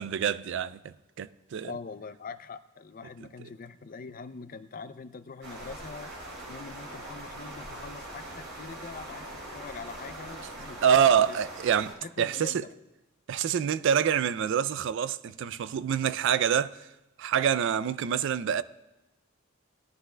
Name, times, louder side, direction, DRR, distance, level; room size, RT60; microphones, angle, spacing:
voice 1, 0.0-1.7 10.8-12.7 13.3-16.9 17.2-18.6, right 8 dB, 60° right, 0.3 m, -26 dB
voice 2, 1.6-6.1 6.5-11.4 12.0-12.7, left 4 dB, 40° left, 0.5 m, -43 dB
sound 1, 5.4-11.9, right 1 dB, 90° right, 3.3 m, -42 dB
18.5 x 11.5 x 2.2 m
head